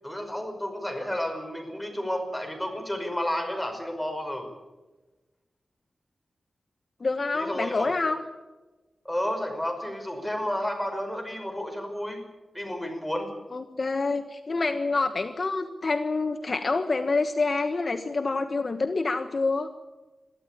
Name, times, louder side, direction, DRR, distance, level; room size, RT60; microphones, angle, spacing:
voice 1, 0.0-4.5 7.3-7.9 9.0-12.2 12.5-13.3, left 1 dB, 5° left, 4 dB, 5.6 m, -31 dB
voice 2, 7.0-8.2 13.5-19.7, left 3 dB, 45° left, 7 dB, 1.3 m, -27 dB
23.0 x 14.5 x 8.7 m, 1.2 s
wide cardioid pair, 95°, 0 cm